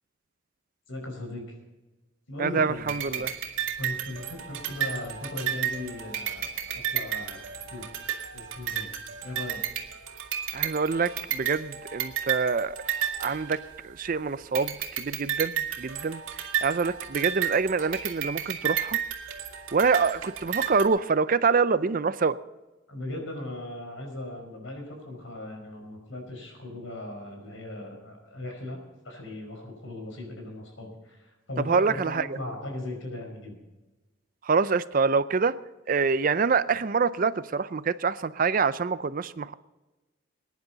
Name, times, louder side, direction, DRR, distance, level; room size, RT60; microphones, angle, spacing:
voice 1, 0.9-1.6 2.3-3.2 3.8-7.4 7.7-7.9 8.3-8.9 9.2-9.6 22.9-28.8 29.0-33.6, left 1 dB, 75° left, 3 dB, 5.3 m, -38 dB
voice 2, 2.4-3.3 10.5-12.8 13.2-13.6 13.8-19.0 19.7-22.4 31.6-32.3 34.4-35.5 35.9-39.5, right 5 dB, 45° right, 15 dB, 0.5 m, -26 dB
sound 1, 2.9-14.1 14.5-20.9, right 9 dB, 80° right, 2.1 m, -32 dB
21.5 x 10.5 x 4.0 m, 1.1 s
head